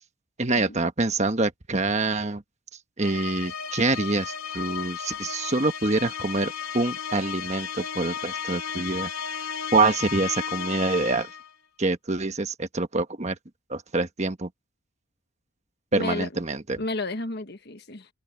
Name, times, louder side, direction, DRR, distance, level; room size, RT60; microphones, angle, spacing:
voice 1, 0.4-2.4 3.0-9.1 9.4-11.3 11.8-13.4 13.7-14.5 15.9-16.8, right 3 dB, 30° right, 1.2 m, -26 dB
sound 1, 3.0-11.5, left 7 dB, 80° left, 3.3 m, -34 dB
voice 2, 15.9-16.4 16.8-18.1, left 2 dB, 50° left, 1.5 m, -32 dB
open air
head